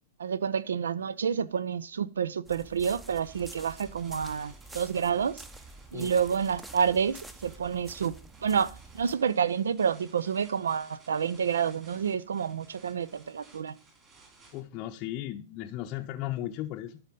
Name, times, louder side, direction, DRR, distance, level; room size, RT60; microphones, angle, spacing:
voice 1, 0.2-5.4 5.9-8.2 8.4-13.7, right 7 dB, 75° right, 0.4 m, -29 dB
walk and run, 2.5-9.1, right 2 dB, 10° right, 0.7 m, -48 dB
sound 1, 3.0-14.6, right 3 dB, 25° right, 3.7 m, -57 dB
voice 2, 14.5-17.0, left 13 dB, 40° left, 0.6 m, -36 dB
12.5 x 4.3 x 5.2 m
hypercardioid pair, 105°, 0 cm